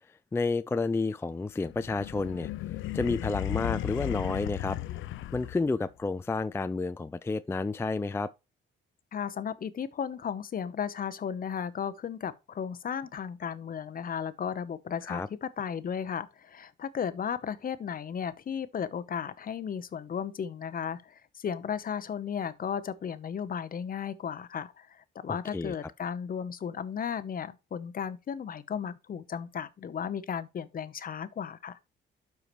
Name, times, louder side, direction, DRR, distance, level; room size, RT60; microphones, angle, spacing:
voice 1, 0.1-2.5 2.9-4.8 5.3-8.3 15.0-15.3 25.3-25.7, left 3 dB, 15° left, 0.3 m, -30 dB
sound 1, 1.6-5.9, left 14 dB, 80° left, 0.5 m, -35 dB
voice 2, 9.1-31.8, left 7 dB, 45° left, 0.8 m, -35 dB
12.0 x 4.7 x 3.1 m
cardioid pair, 90°, 20 cm